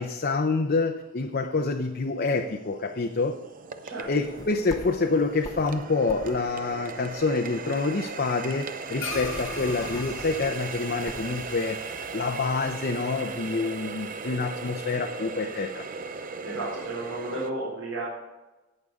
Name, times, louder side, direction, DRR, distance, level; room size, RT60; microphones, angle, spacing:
voice 1, 0.0-3.4 4.1-11.8 12.1-15.8, left 3 dB, 45° left, 3 dB, 0.7 m, -27 dB
Water tap faucet, 1.0-1.1 1.7-17.5, right 4 dB, 40° right, 0.7 m, -38 dB
sound 1, 4.0-7.8 8.1-8.2 8.5-8.6 8.9-11.4, left 1 dB, 15° left, 0.8 m, -43 dB
sound 2, 9.0-13.6, left 3 dB, 70° left, 1.2 m, -40 dB
voice 2, 16.4-18.0, right 2 dB, 85° right, -8 dB, 4.2 m, -33 dB
17.5 x 6.7 x 3.6 m, 1.1 s
head